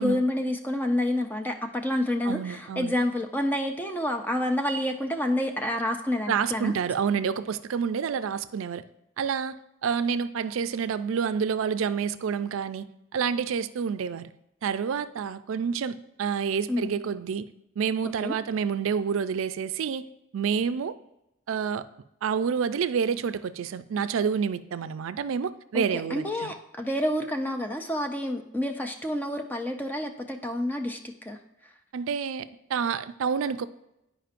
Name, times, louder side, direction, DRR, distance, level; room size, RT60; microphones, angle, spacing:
voice 1, 0.0-6.7 16.7-16.9 18.2-18.4 25.7-31.4, left 1 dB, 10° left, 5 dB, 0.4 m, -28 dB
voice 2, 2.3-2.9 6.3-8.8 9.2-9.6 9.8-12.9 13.1-14.3 14.6-17.5 17.8-20.0 20.3-21.0 21.5-21.9 22.2-26.5 31.9-33.7, right 6 dB, 80° right, 13 dB, 0.4 m, -28 dB
10.0 x 5.0 x 2.5 m, 0.86 s
head